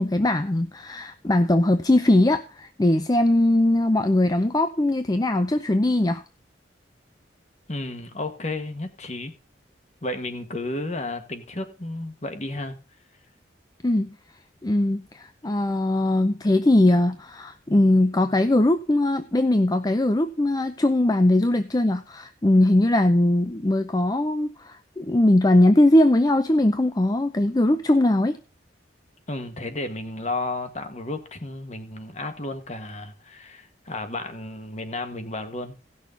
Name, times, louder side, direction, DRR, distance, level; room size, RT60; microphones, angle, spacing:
voice 1, 0.0-6.2 13.8-14.1 14.6-28.4, left 1 dB, 20° left, 0.5 m, -20 dB
voice 2, 7.7-9.3 10.0-12.8 29.3-35.8, left 2 dB, 40° left, 1.5 m, -32 dB
17.0 x 6.4 x 3.9 m
head